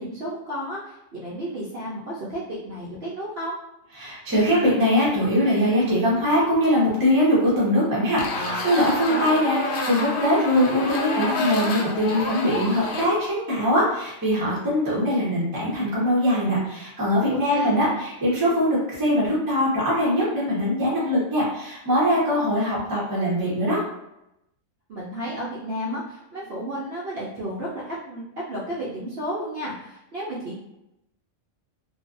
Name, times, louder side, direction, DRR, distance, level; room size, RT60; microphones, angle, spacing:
voice 1, 0.0-3.6 9.0-9.3 17.3-17.8 24.9-28.2 28.5-30.6, equal, 60° right, -7 dB, 0.7 m, -32 dB
voice 2, 4.0-23.8, equal, 20° right, -6 dB, 0.6 m, -22 dB
sound 1, 8.2-13.1, left 2 dB, 65° left, 0.5 m, -28 dB
2.5 x 2.2 x 2.4 m, 0.86 s
omnidirectional pair, 1.4 m